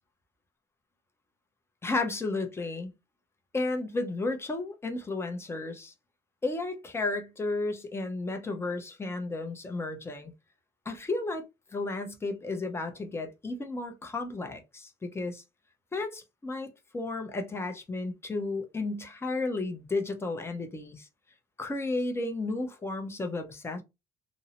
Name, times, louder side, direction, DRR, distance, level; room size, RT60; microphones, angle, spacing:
voice 1, 1.8-2.9 3.5-5.9 6.4-10.3 10.9-11.4 11.7-15.4 15.9-21.1 21.6-23.8, left 2 dB, 15° left, 0.6 m, -33 dB
2.6 x 2.0 x 2.8 m
cardioid pair, 110°, 17 cm